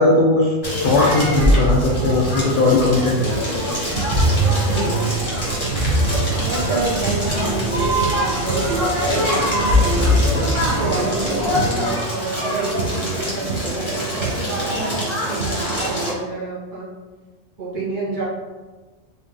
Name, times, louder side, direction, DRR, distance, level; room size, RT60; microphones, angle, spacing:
voice 1, 0.0-3.6 7.4-7.5 11.6-11.9, left 3 dB, 55° left, -3 dB, 0.6 m, -19 dB
Crackle, 0.6-16.1, right 1 dB, 25° left, 1.3 m, -23 dB
Ocean, 1.1-11.7, equal, 40° right, 0.6 m, -23 dB
voice 2, 4.5-5.7 6.4-10.2 10.8-16.9 17.6-18.2, right 3 dB, 70° right, -7 dB, 1.8 m, -30 dB
sound 1, 5.1-11.7, right 1 dB, 15° right, 1.0 m, -34 dB
3.7 x 2.6 x 3.7 m, 1.3 s
omnidirectional pair, 1.2 m